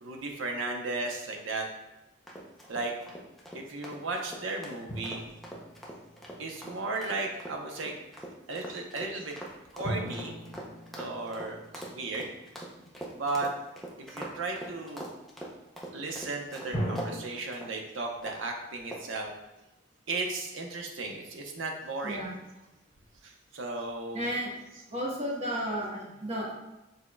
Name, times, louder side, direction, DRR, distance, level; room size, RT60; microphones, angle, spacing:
voice 1, 0.0-1.7 2.7-2.9 3.5-5.2 6.4-7.9 8.5-9.3 9.7-10.3 10.9-12.3 13.1-13.5 14.1-15.1 15.9-19.3 20.1-22.3 23.2-24.3 24.7-24.8, right 3 dB, 80° right, 2 dB, 0.7 m, -35 dB
sound 1, 2.3-17.1 17.5-17.7 18.2-18.5 18.9-19.2, right 1 dB, ahead, 0.5 m, -43 dB
sound 2, 4.9-6.8 9.8-13.1 16.7-17.2, equal, 35° left, 1.5 m, -38 dB
voice 2, 24.1-24.5 24.9-26.5, equal, 35° right, -4 dB, 1.1 m, -33 dB
6.2 x 3.5 x 2.2 m, 0.97 s
head